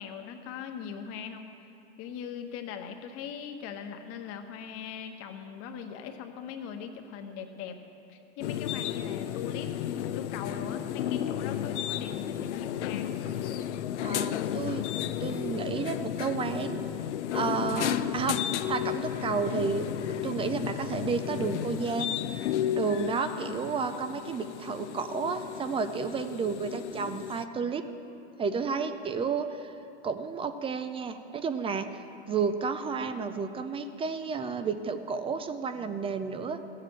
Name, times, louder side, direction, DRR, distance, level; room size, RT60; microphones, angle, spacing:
voice 1, 0.0-1.5 2.0-7.8 8.1-9.7 10.0-13.2 23.2-23.8, left 7 dB, 45° left, 6 dB, 1.3 m, -40 dB
sound 1, 8.4-27.4, left 10 dB, 80° left, 0.6 m, -33 dB
voice 2, 14.0-14.9 15.2-16.8 17.3-18.4 18.7-22.2 22.7-27.8 28.4-29.7 30.0-31.9 32.3-36.6, right 5 dB, 15° right, 9 dB, 0.5 m, -31 dB
15.5 x 7.7 x 7.5 m, 2.7 s
hypercardioid pair, 125°, 34 cm